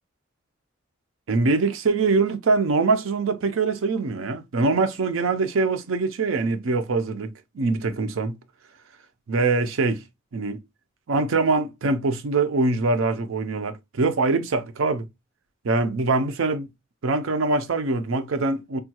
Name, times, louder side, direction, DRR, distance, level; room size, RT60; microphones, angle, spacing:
voice 1, 1.3-7.3 7.5-8.4 9.3-10.0 10.3-10.6 11.1-15.1 15.6-16.7 17.0-18.8, right 3 dB, 90° right, 0.5 m, -23 dB
3.5 x 2.2 x 2.8 m
head